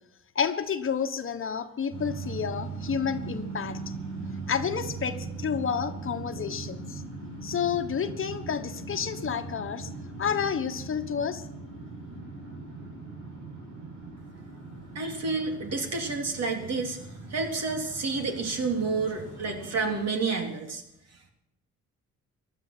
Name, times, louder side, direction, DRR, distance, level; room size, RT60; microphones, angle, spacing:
voice 1, 0.3-3.8 4.5-7.0 7.4-9.9 10.2-11.4, left 7 dB, 45° left, 8 dB, 1.3 m, -30 dB
sound 1, 1.9-20.0, right 3 dB, 80° right, 7.6 m, -40 dB
voice 2, 14.9-17.0 17.3-20.8, right 4 dB, 55° right, 3 dB, 3.4 m, -29 dB
16.0 x 12.0 x 6.2 m, 0.84 s
cardioid pair, 90°, 30 cm